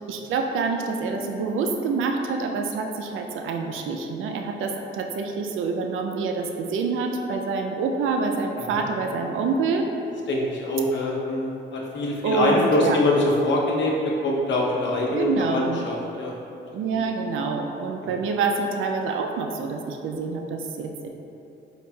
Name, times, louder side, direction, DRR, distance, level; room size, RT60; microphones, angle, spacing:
voice 1, 0.1-9.9 12.2-13.0 15.1-15.8 16.7-21.1, right 4 dB, 80° right, 3 dB, 0.4 m, -26 dB
voice 2, 10.3-16.3 16.9-17.0, left 1 dB, 65° left, -2 dB, 0.8 m, -24 dB
4.8 x 4.2 x 2.3 m, 2.9 s
cardioid pair, 75°, 20 cm